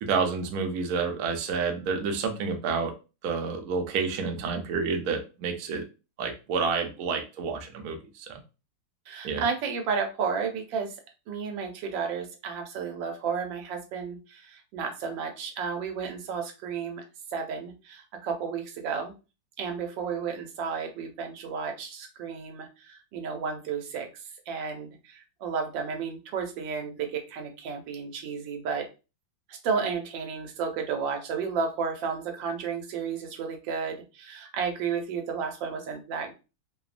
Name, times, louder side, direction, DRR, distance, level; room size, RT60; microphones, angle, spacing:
voice 1, 0.0-2.9 3.2-5.8 6.2-8.4 9.2-9.4, right 5 dB, 70° right, 4 dB, 0.9 m, -29 dB
voice 2, 9.1-11.0 11.3-17.0 17.3-19.1 19.6-24.1 24.5-28.9 29.5-36.3, right 6 dB, 90° right, 4 dB, 1.3 m, -32 dB
3.0 x 2.1 x 2.4 m, 0.30 s
omnidirectional pair, 1.9 m